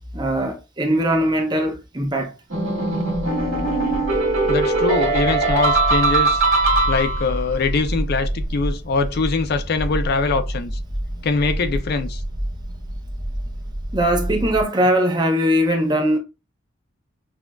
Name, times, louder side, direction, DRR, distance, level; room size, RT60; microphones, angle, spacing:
voice 1, 0.1-2.3 13.9-16.2, equal, 20° right, 0.6 m, -20 dB
sound 1, 2.5-7.4, right 3 dB, 80° right, 1.8 m, -20 dB
sound 2, 3.1-14.6, right 1 dB, 60° right, 1.3 m, -29 dB
voice 2, 4.5-6.4 6.9-10.8 11.2-12.2, left 4 dB, 50° left, 0.4 m, -23 dB
5.9 x 2.4 x 2.2 m
head